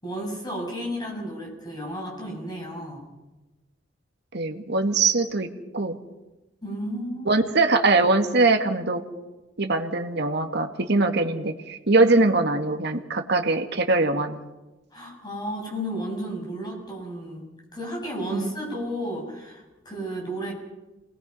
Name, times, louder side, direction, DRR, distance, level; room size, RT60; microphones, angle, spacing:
voice 1, 0.0-3.0 6.6-7.4 14.9-17.4 17.7-20.5, equal, 20° left, -1 dB, 7.7 m, -33 dB
voice 2, 4.3-5.5 5.7-6.0 7.3-9.0 9.6-14.5 18.3-18.5, right 3 dB, 60° right, 5 dB, 1.9 m, -22 dB
28.5 x 20.5 x 5.7 m, 1.1 s
head